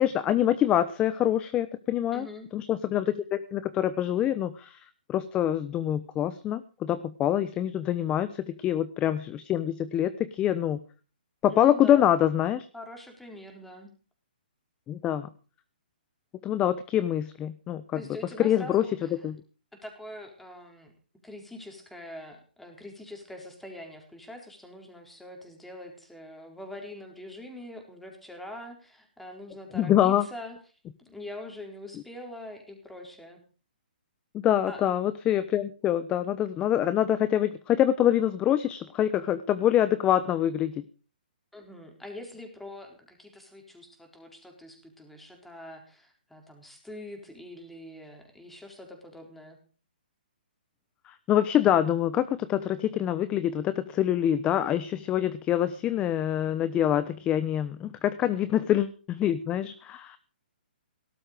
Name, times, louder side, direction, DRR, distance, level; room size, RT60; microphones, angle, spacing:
voice 1, 0.0-2.3 2.5-10.8 11.4-12.7 14.9-15.3 16.4-18.0 18.4-18.8 19.2-19.4 29.7-30.3 34.3-40.7 51.1-60.2, left 11 dB, 20° left, 13 dB, 0.9 m, -25 dB
voice 2, 2.1-2.5 11.5-12.1 12.7-13.9 17.9-19.3 19.8-20.9 21.2-30.6 31.0-33.4 34.7-34.8 41.5-49.6 58.2-58.5, left 1 dB, 5° left, 3 dB, 4.1 m, -44 dB
18.0 x 12.5 x 5.1 m, 0.38 s
hypercardioid pair, 150°, 5 cm